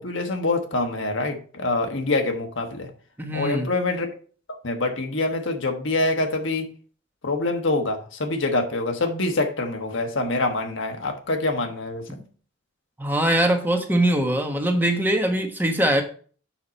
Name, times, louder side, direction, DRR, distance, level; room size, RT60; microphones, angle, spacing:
voice 1, 0.0-2.9 3.3-4.1 4.6-6.7 7.2-12.1, left 2 dB, 75° left, 4 dB, 1.4 m, -25 dB
voice 2, 3.2-3.7 12.1-12.2 13.0-16.0, right 1 dB, 10° right, 3 dB, 1.2 m, -22 dB
7.3 x 5.7 x 4.1 m, 0.42 s
head